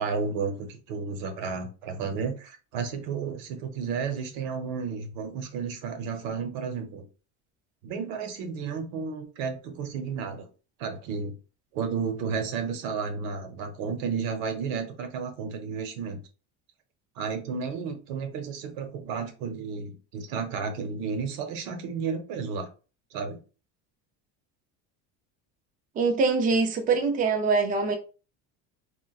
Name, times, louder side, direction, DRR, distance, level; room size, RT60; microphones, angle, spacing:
voice 1, 0.0-7.0 7.8-10.5 10.8-11.3 11.7-16.2 17.2-22.7 23.1-23.4, right 5 dB, 90° right, 0.9 m, -32 dB
voice 2, 26.0-28.0, right 4 dB, 25° right, 0.5 m, -23 dB
4.3 x 2.2 x 2.3 m
cardioid pair, 150°, 33 cm